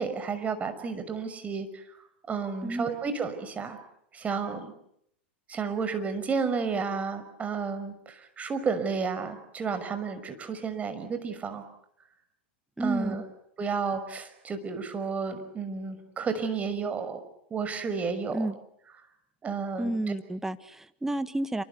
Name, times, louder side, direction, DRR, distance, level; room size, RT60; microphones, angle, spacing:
voice 1, 0.0-1.9 2.3-3.8 4.1-4.7 5.5-11.6 12.8-13.2 13.6-17.2 17.5-18.5 19.4-20.1, right 5 dB, 25° right, 9 dB, 5.9 m, -32 dB
voice 2, 12.8-13.2 18.3-18.6 19.8-21.6, right 2 dB, 5° right, 11 dB, 1.8 m, -31 dB
28.0 x 25.5 x 8.3 m, 0.73 s
hypercardioid pair, 100°, 6 cm